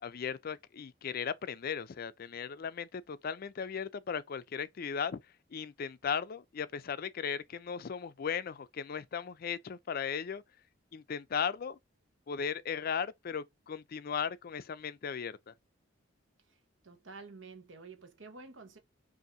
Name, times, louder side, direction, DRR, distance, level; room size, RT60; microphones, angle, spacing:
voice 1, 0.0-5.2 5.5-10.4 10.9-11.8 12.3-15.5, left 7 dB, 50° left, 0.4 m, -37 dB
voice 2, 16.8-18.8, right 4 dB, 75° right, 1.0 m, -50 dB
5.5 x 2.6 x 2.6 m
head